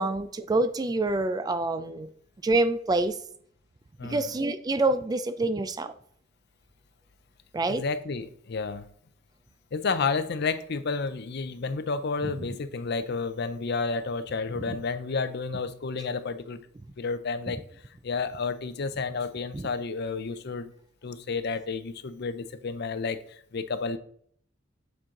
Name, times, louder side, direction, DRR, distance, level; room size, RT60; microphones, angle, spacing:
voice 1, 0.0-2.1 2.4-3.2 4.0-5.9 7.5-7.8 14.7-14.8 19.5-19.7, right 2 dB, 20° right, 11 dB, 0.3 m, -26 dB
voice 2, 4.0-4.3 7.6-8.9 9.7-16.6 17.0-17.6 18.0-20.7 21.0-23.2 23.5-24.0, left 4 dB, 55° left, 12 dB, 0.5 m, -31 dB
7.5 x 4.4 x 3.7 m, 0.62 s
head